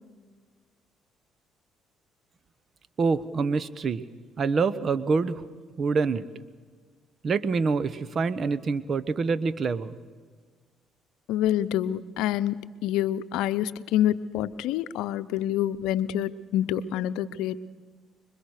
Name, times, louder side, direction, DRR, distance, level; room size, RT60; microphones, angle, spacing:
voice 1, 3.0-4.0 4.4-5.4 5.8-6.2 7.2-9.9, right 4 dB, 50° right, 15 dB, 1.2 m, -26 dB
voice 2, 11.3-17.6, left 11 dB, 80° left, 14 dB, 0.7 m, -27 dB
26.0 x 22.5 x 6.6 m, 1.5 s
hypercardioid pair, 60°, 0 cm